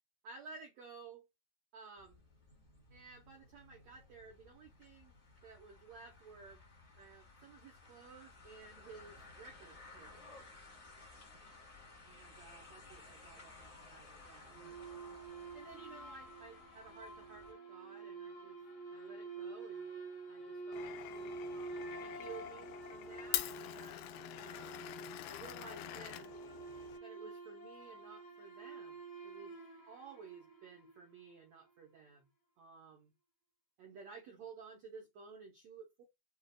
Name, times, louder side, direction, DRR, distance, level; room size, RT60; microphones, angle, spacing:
voice 1, 0.2-1.3 1.7-2.2 2.9-5.2 5.4-6.6 7.0-10.4 12.0-14.8 15.5-18.6 18.9-19.9 20.3-24.9 25.2-26.3 27.0-29.6 29.9-32.3 32.6-33.1 33.8-36.0, right 4 dB, 70° right, 1.6 m, -55 dB
sound 1, 2.0-17.5, left 3 dB, 30° left, 1.3 m, -58 dB
sound 2, 14.5-31.1, right 3 dB, 60° left, 1.4 m, -48 dB
Glass, 20.7-27.0, left 14 dB, 80° left, 2.4 m, -44 dB
6.3 x 2.5 x 2.3 m
omnidirectional pair, 4.4 m